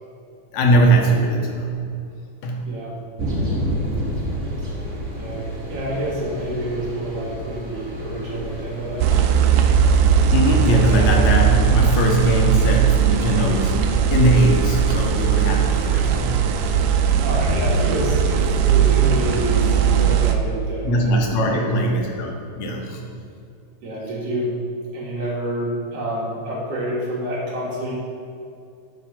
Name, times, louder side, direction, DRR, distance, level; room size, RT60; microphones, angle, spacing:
voice 1, 0.5-1.7 2.4-2.7 10.3-16.3 20.8-23.0, right 1 dB, 75° left, 0 dB, 2.1 m, -20 dB
sound 1, 3.2-9.2, equal, 30° right, 1.5 m, -29 dB
voice 2, 5.2-9.2 10.9-11.1 16.1-16.3 17.2-21.1 21.4-22.0 23.8-24.5 24.9-27.9, right 1 dB, 60° right, -5 dB, 2.5 m, -28 dB
sound 2, 9.0-20.3, right 7 dB, 75° right, 1.7 m, -18 dB
9.6 x 4.7 x 5.7 m, 2.5 s
omnidirectional pair, 3.4 m